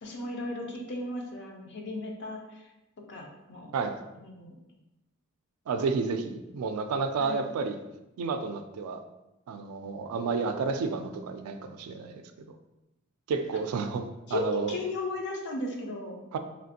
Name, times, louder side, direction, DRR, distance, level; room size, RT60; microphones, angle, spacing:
voice 1, 0.0-2.7 3.1-3.7 4.2-4.5 7.2-7.5 14.3-16.2, left 2 dB, 55° left, 1 dB, 0.5 m, -35 dB
voice 2, 5.7-7.8 8.2-9.0 9.5-12.6 13.3-14.8 16.3-16.4, right 4 dB, 90° right, 9 dB, 0.3 m, -31 dB
3.1 x 2.5 x 2.7 m, 0.96 s
head